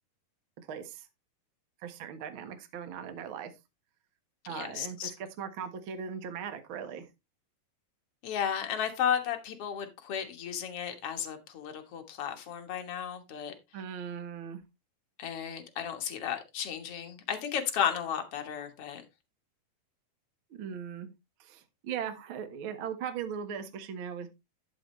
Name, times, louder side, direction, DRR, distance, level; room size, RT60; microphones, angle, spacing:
voice 1, 0.7-1.1 1.8-3.5 4.5-7.1 13.7-14.6 20.5-21.1 21.4-24.3, right 7 dB, 70° right, 1.2 m, -39 dB
voice 2, 4.5-5.1 8.2-13.5 15.2-19.0, left 8 dB, 60° left, 1.6 m, -34 dB
11.5 x 7.1 x 3.2 m
omnidirectional pair, 4.5 m